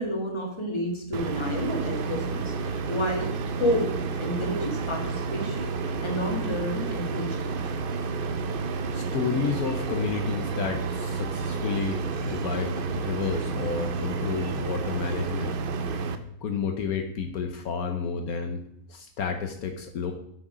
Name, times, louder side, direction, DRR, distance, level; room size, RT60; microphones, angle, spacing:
voice 1, 0.0-3.3 3.6-7.7, equal, 20° left, 1 dB, 1.7 m, -30 dB
sound 1, 1.1-16.2, right 4 dB, 55° right, 0.6 m, -30 dB
voice 2, 8.9-15.6 16.4-18.6 18.9-20.1, left 6 dB, 70° left, 5 dB, 1.2 m, -31 dB
7.9 x 6.1 x 5.0 m, 0.72 s
omnidirectional pair, 1.6 m